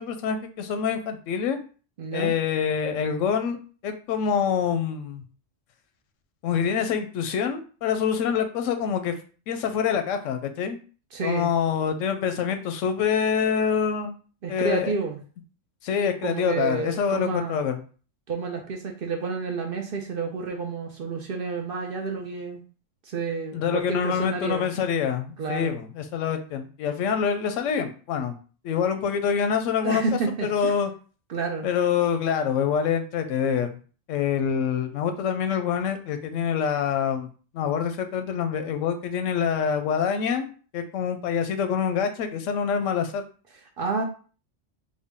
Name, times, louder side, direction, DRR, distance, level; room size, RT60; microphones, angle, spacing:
voice 1, 0.0-1.6 2.1-3.6 3.8-5.2 6.4-9.1 9.5-10.8 11.2-14.1 14.5-14.9 15.8-17.8 23.5-28.4 28.6-30.0 30.4-30.9 31.6-33.7 34.1-37.3 37.5-40.5 40.7-43.2, left 7 dB, 90° left, 7 dB, 0.9 m, -26 dB
voice 2, 2.0-2.3 11.1-11.5 14.4-15.2 16.2-17.6 18.3-22.6 23.0-24.7 25.4-25.8 29.8-30.8 31.3-31.7 43.8-44.0, right 4 dB, 55° right, 3 dB, 0.7 m, -30 dB
3.6 x 2.1 x 3.6 m, 0.38 s
omnidirectional pair, 1.3 m